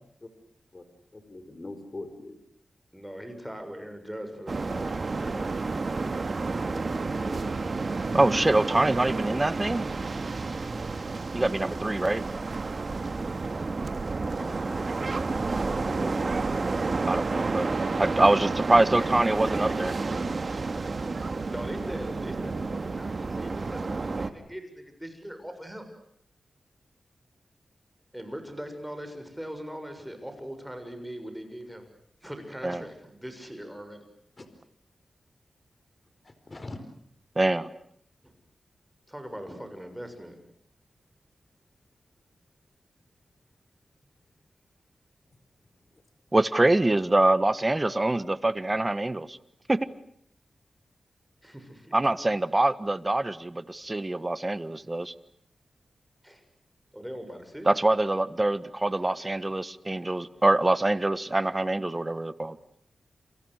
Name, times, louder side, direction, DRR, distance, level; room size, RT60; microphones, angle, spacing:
voice 1, 1.1-2.4 34.4-34.5 36.2-36.8, left 2 dB, 35° left, 9 dB, 4.6 m, -41 dB
voice 2, 2.9-5.5 6.0-7.7 14.3-14.8 15.5-16.7 19.0-19.7 21.5-25.9 28.1-31.8 32.2-34.1 38.2-38.3 39.1-40.4 51.4-52.1 56.2-56.4 56.9-57.7, equal, 5° right, 7 dB, 7.0 m, -41 dB
sound 1, 4.5-24.3, right 3 dB, 50° right, 2.2 m, -30 dB
voice 3, 8.1-9.8 11.3-12.2 17.1-19.9 32.6-32.8 37.4-37.7 46.3-49.4 49.7-49.9 51.9-55.1 57.7-62.6, right 2 dB, 25° right, 14 dB, 1.4 m, -24 dB
29.0 x 28.5 x 6.6 m, 0.68 s
wide cardioid pair, 75°, 0 cm